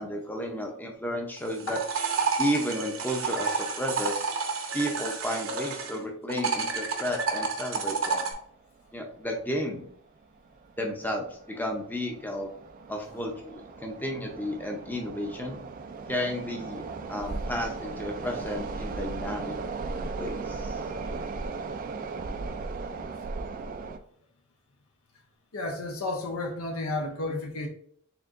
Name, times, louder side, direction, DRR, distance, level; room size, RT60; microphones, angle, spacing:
voice 1, 0.0-1.8 2.4-4.3 4.7-8.3 8.9-9.9 10.8-12.5 12.9-15.6 16.1-19.6 20.2-20.8, equal, 10° left, 2 dB, 0.6 m, -32 dB
sound 1, 1.4-6.0 6.3-8.3, right 5 dB, 65° right, 0.8 m, -30 dB
sound 2, 8.3-8.5 8.8-9.0 9.5-9.9 10.4-24.0, right 3 dB, 40° right, 0.3 m, -37 dB
voice 2, 25.5-27.7, left 2 dB, 85° left, 2 dB, 0.7 m, -32 dB
4.4 x 3.6 x 2.5 m, 0.63 s
head